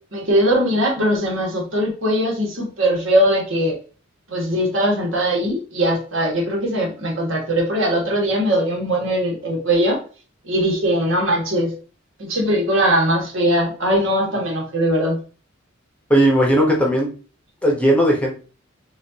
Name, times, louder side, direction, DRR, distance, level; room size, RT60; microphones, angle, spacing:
voice 1, 0.1-3.8 4.3-10.0 10.4-11.7 12.2-15.2, equal, 65° right, -1 dB, 1.7 m, -20 dB
voice 2, 16.1-17.1 17.6-18.3, right 1 dB, 5° left, -1 dB, 1.0 m, -16 dB
6.3 x 2.6 x 2.8 m, 0.37 s
head